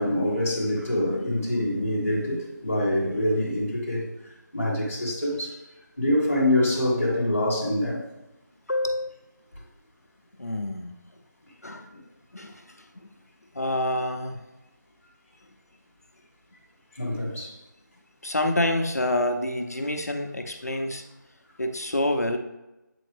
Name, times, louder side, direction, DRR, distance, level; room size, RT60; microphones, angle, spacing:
voice 1, 0.0-4.1 4.5-5.6 6.0-8.0 11.6-11.8 16.9-17.5, left 1 dB, 5° left, -17 dB, 0.7 m, -25 dB
voice 2, 8.7-9.1 10.4-10.9 11.6-11.9 12.3-13.1 13.5-14.5 18.2-21.0 21.6-22.4, left 1 dB, 55° left, 4 dB, 0.6 m, -27 dB
7.7 x 4.2 x 3.3 m, 0.98 s
figure-of-eight pair, 180°, 11 cm